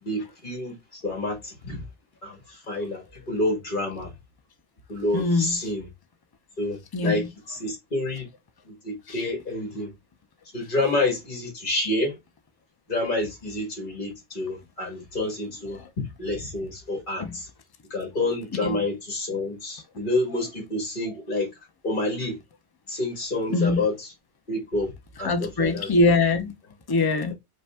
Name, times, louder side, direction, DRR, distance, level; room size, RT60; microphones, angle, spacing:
voice 1, 0.0-1.8 2.2-4.1 4.9-5.9 6.6-8.3 8.6-9.9 10.5-12.2 12.9-17.5 17.9-21.5 21.8-22.4 22.9-24.1 24.5-24.9 25.2-25.9, left 2 dB, 45° left, 1.8 m, -28 dB
voice 2, 5.1-5.6 6.9-7.3 17.2-17.3 18.6-18.7 23.5-23.8 25.2-26.5 26.9-27.3, left 3 dB, 25° left, 0.6 m, -22 dB
5.4 x 2.3 x 3.4 m
omnidirectional pair, 1.2 m